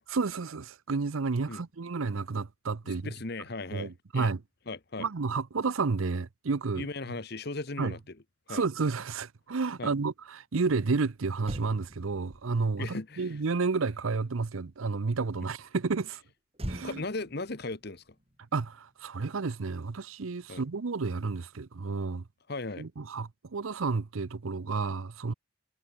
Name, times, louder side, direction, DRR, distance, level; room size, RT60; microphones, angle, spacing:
voice 1, 0.1-3.1 3.7-4.4 5.0-6.9 7.8-7.9 8.5-16.2 16.7-17.0 18.5-22.2 22.8-25.3, right 4 dB, 80° right, 0.7 m, -31 dB
voice 2, 2.8-4.3 4.7-5.1 6.7-8.2 8.5-8.6 9.8-9.9 12.8-13.4 16.8-18.0 20.5-20.6 22.5-22.9, left 3 dB, 50° left, 1.2 m, -37 dB
Motor vehicle (road), 11.4-14.9 16.5-19.1 19.4-19.7, equal, 30° right, 2.8 m, -45 dB
head